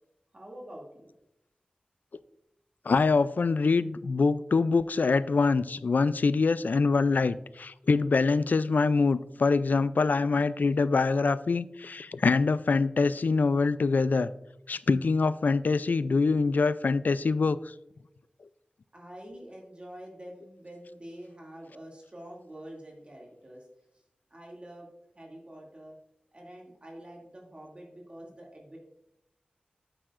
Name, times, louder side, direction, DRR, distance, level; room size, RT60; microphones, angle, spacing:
voice 1, 0.3-1.1 18.9-23.7 23.9-24.0 24.3-24.9 25.1-26.0 26.3-28.8, right 1 dB, 40° right, -2 dB, 2.4 m, -46 dB
voice 2, 2.9-14.3 14.7-17.7, left 4 dB, 75° left, 16 dB, 0.3 m, -24 dB
8.9 x 8.8 x 2.5 m, 0.83 s
wide cardioid pair, 60°, 3 cm